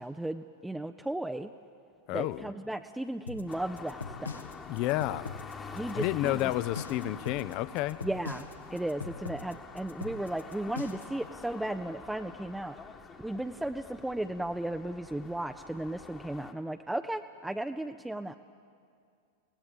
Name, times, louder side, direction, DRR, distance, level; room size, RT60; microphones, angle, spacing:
voice 1, 0.0-1.5 2.1-4.3 5.7-6.5 8.0-12.8 13.2-18.4, right 1 dB, 5° right, 7 dB, 0.6 m, -35 dB
voice 2, 2.1-2.5 4.7-5.3 5.9-8.0, left 15 dB, 40° left, 18 dB, 0.6 m, -30 dB
sound 1, 3.3-11.2, left 4 dB, 80° left, 1.4 m, -41 dB
sound 2, 3.5-16.5, left 5 dB, 20° left, 1.4 m, -47 dB
24.0 x 18.5 x 7.4 m, 2.3 s
figure-of-eight pair, 90°, 0 cm